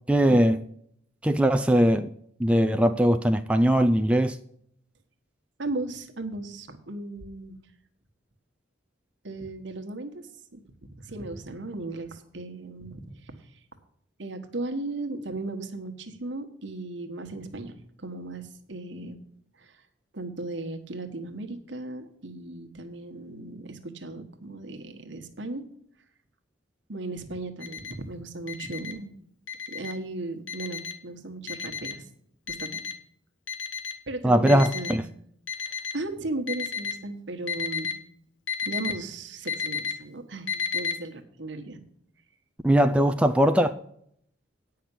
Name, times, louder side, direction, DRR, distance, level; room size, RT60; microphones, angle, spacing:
voice 1, 0.1-0.6 1.2-2.1 2.4-4.4 34.2-35.0 42.6-43.7, equal, 5° right, 0.3 m, -20 dB
voice 2, 5.6-7.6 9.2-10.2 10.5-10.6 11.0-13.6 14.2-17.7 18.0-19.2 19.6-19.8 20.1-25.6 26.9-29.1 29.7-32.1 32.5-32.8 34.1-35.0 35.6-37.9 38.6-41.8, right 2 dB, 70° right, 1.3 m, -36 dB
Alarm, 27.6-27.9 28.5-28.9 29.5-29.9 30.5-30.9 31.5-31.9 32.5-32.9 33.5-33.9 34.5-34.9 35.5-35.9 36.5-36.9 37.5-37.9 38.5-38.9 39.5-39.9 40.5-40.9, left 7 dB, 80° left, 1.1 m, -31 dB
9.2 x 5.8 x 8.2 m
head